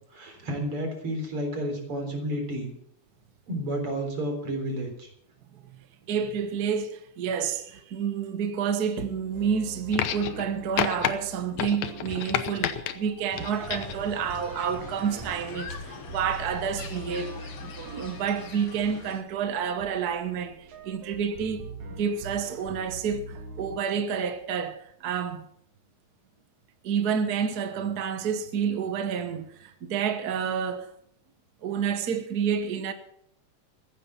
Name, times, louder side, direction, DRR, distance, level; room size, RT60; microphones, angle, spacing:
voice 1, 0.1-2.7 3.5-5.1, right 1 dB, 50° right, 4.6 m, -31 dB
voice 2, 6.1-21.7 22.0-25.4 26.8-30.9 31.6-32.9, right 7 dB, 65° right, 0.9 m, -29 dB
sound 1, 9.3-23.8, right 2 dB, 85° right, 3.3 m, -43 dB
sound 2, 9.9-10.5 10.8-11.1 11.6-12.9 13.4-14.0 15.1-15.2, left 10 dB, 75° left, 2.2 m, -29 dB
sound 3, 13.3-19.2, left 6 dB, 55° left, 2.3 m, -43 dB
15.0 x 10.5 x 7.1 m
omnidirectional pair, 3.3 m